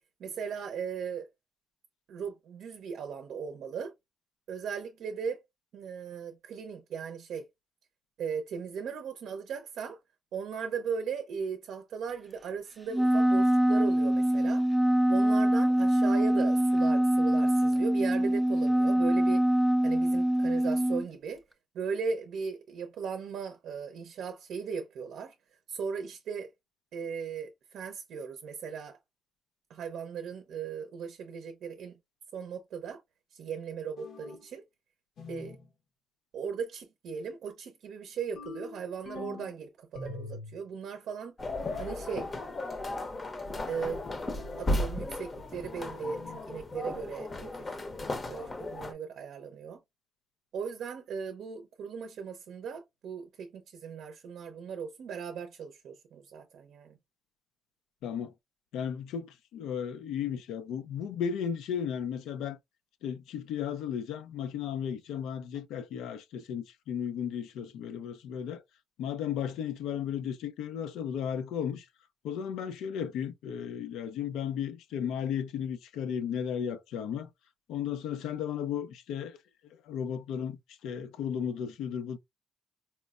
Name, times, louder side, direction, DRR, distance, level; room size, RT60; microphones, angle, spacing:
voice 1, 0.2-1.3 2.1-3.9 4.5-5.4 5.7-7.5 8.2-10.0 10.3-14.7 15.1-19.4 19.8-21.4 21.7-25.3 25.7-26.5 26.9-29.0 29.7-32.0 32.3-33.0 33.3-34.6 35.3-35.6 36.3-41.3 41.8-42.3 43.7-44.0 44.6-47.8 48.1-49.8 50.5-57.0, right 6 dB, 70° right, 0.5 m, -37 dB
Wind instrument woodwind instrument, 12.9-21.0, right 1 dB, 10° right, 0.4 m, -24 dB
sound 1, 34.0-34.5 35.2-35.7 38.4-39.5 39.9-40.6 41.6-42.1 44.4-44.9 46.0-46.5, left 3 dB, 70° left, 0.8 m, -44 dB
sound 2, 41.4-48.9, left 1 dB, 30° left, 0.6 m, -35 dB
voice 2, 58.0-58.3 58.7-62.6 63.0-68.6 69.0-71.8 72.2-77.3 77.7-79.4 79.9-82.2, left 8 dB, 90° left, 0.4 m, -34 dB
4.2 x 2.0 x 2.3 m
cardioid pair, 90°, 0 cm